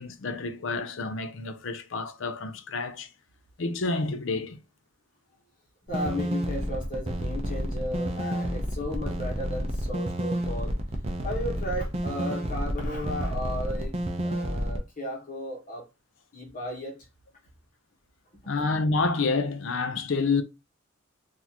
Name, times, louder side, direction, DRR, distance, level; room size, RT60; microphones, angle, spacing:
voice 1, 0.0-3.1 3.6-4.6 18.5-20.4, left 3 dB, 65° left, 0.5 m, -28 dB
voice 2, 5.9-10.7 11.2-13.9 14.2-15.8 16.3-17.0 18.4-18.5, left 1 dB, 40° left, 1.2 m, -34 dB
sound 1, 5.9-14.8, equal, 30° right, 0.6 m, -30 dB
4.1 x 2.7 x 2.9 m
head